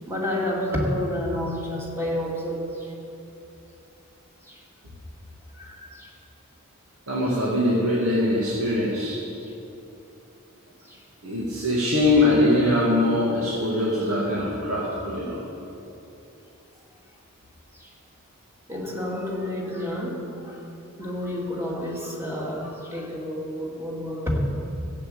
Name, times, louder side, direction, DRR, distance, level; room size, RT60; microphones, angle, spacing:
voice 1, 0.1-2.9 4.4-4.6 5.6-6.1 9.4-9.5 10.9-11.0 14.4-14.5 17.7-17.9 18.7-20.6 21.0-24.5, left 1 dB, 10° right, -3 dB, 2.5 m, -30 dB
voice 2, 7.1-9.2 11.2-15.4, left 1 dB, 80° right, -6 dB, 2.2 m, -22 dB
14.5 x 7.6 x 8.5 m, 2.8 s
head